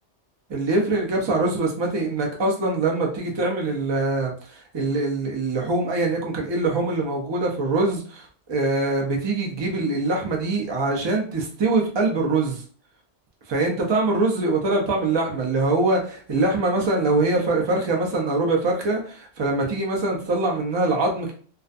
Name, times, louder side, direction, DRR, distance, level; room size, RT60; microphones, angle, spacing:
voice 1, 0.5-12.6 13.5-16.0 16.3-21.3, right 2 dB, 35° right, 0 dB, 0.4 m, -23 dB
2.4 x 2.1 x 2.5 m, 0.43 s
omnidirectional pair, 1.2 m